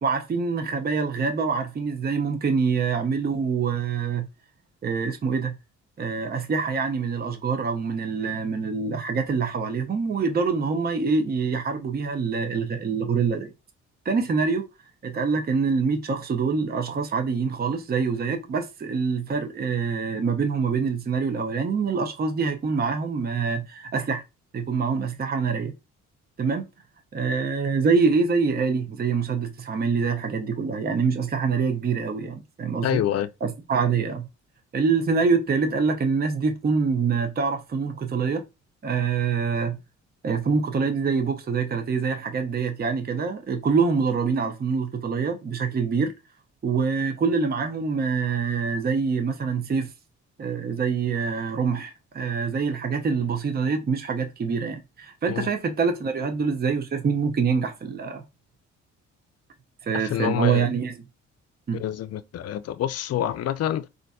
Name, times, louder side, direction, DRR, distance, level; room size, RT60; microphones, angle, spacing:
voice 1, 0.0-4.3 4.8-5.5 6.0-13.5 14.0-14.6 15.0-24.2 24.5-25.7 26.4-26.6 27.1-33.0 33.4-34.3 34.7-38.4 38.8-39.8 40.2-46.1 46.6-49.9 50.4-58.2 59.8-60.9 61.7-61.8, right 5 dB, 30° right, 0.6 m, -25 dB
voice 2, 32.8-33.3 55.3-55.5 59.9-60.7 61.7-63.9, left 11 dB, 55° left, 0.4 m, -27 dB
4.0 x 2.5 x 2.3 m
cardioid pair, 90°, 30 cm